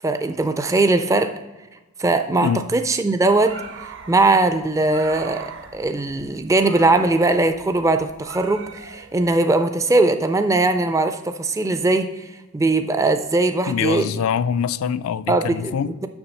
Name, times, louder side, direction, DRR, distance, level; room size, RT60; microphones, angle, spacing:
voice 1, 0.0-1.4 2.0-3.6 4.1-12.1 12.5-14.1 15.3-16.1, right 2 dB, 15° right, 0.3 m, -20 dB
sound 1, 3.3-9.4, right 5 dB, 60° right, 0.7 m, -41 dB
voice 2, 13.7-15.9, left 7 dB, 65° left, 0.3 m, -24 dB
7.1 x 6.2 x 5.3 m
head